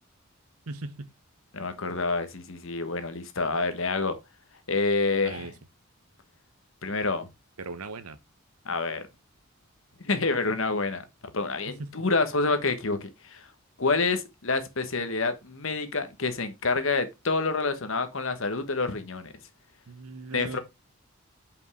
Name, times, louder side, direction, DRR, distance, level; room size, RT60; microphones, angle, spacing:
voice 1, 0.7-1.1 5.2-5.5 7.6-8.2 11.7-12.1 19.9-20.6, right 3 dB, 85° right, 0.9 m, -39 dB
voice 2, 1.5-4.2 4.7-5.5 6.8-7.3 8.6-9.1 10.0-11.0 11.3-13.5 13.8-19.3 20.3-20.6, left 3 dB, 65° left, 1.2 m, -28 dB
5.4 x 5.3 x 4.8 m
head